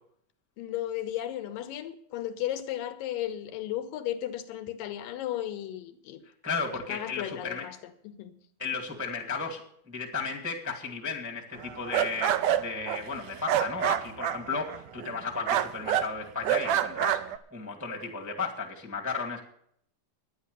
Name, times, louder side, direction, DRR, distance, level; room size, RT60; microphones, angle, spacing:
voice 1, 0.6-6.2 6.9-8.4, left 12 dB, 80° left, 2.4 m, -35 dB
voice 2, 6.4-7.6 8.6-17.2 17.5-19.4, left 4 dB, 5° right, 1.0 m, -34 dB
sound 1, 11.6-15.2 15.5-16.1 16.4-17.4, right 11 dB, 75° right, 2.1 m, -27 dB
11.0 x 10.0 x 6.7 m
omnidirectional pair, 4.1 m